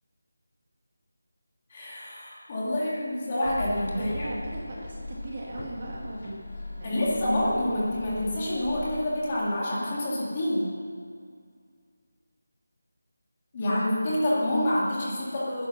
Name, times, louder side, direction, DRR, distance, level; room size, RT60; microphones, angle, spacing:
voice 1, 1.7-4.3 6.8-10.7 13.5-15.7, left 1 dB, 20° left, -6 dB, 2.0 m, -27 dB
sound 1, 3.4-9.0, left 2 dB, 50° left, 2.1 m, -39 dB
voice 2, 3.9-6.4 6.7-7.1, right 2 dB, 25° right, -2 dB, 1.9 m, -38 dB
19.5 x 10.5 x 5.9 m, 2.1 s
figure-of-eight pair, 180°, 0 cm